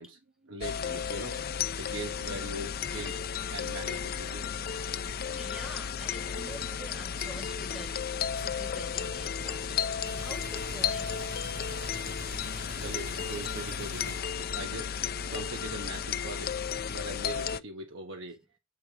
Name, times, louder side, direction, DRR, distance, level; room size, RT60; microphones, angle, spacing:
voice 1, 0.0-1.4 1.8-3.2 3.5-4.5 12.8-15.0 15.3-18.4, right 2 dB, 70° right, 1.1 m, -41 dB
sound 1, 0.6-17.6, left 7 dB, 50° left, 0.5 m, -34 dB
voice 2, 5.2-11.2, equal, 5° right, 1.1 m, -46 dB
sound 2, 9.8-15.0, right 2 dB, 45° right, 1.5 m, -46 dB
8.2 x 3.5 x 4.8 m
head